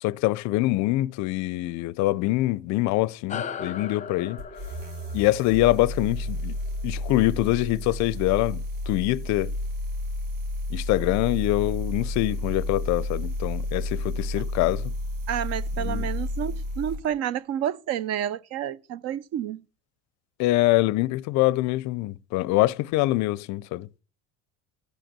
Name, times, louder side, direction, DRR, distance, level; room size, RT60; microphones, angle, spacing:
voice 1, 0.0-4.4 5.1-6.6 6.8-9.5 10.7-14.9 15.8-16.1 20.4-23.9, left 18 dB, 60° left, 0.5 m, -24 dB
sound 1, 3.3-8.1, left 6 dB, 25° left, 0.7 m, -39 dB
sound 2, 4.4-17.1, left 1 dB, 75° right, 1.9 m, -31 dB
voice 2, 15.3-19.6, right 10 dB, 50° right, 0.6 m, -30 dB
13.5 x 5.1 x 7.4 m
supercardioid pair, 100°, 32 cm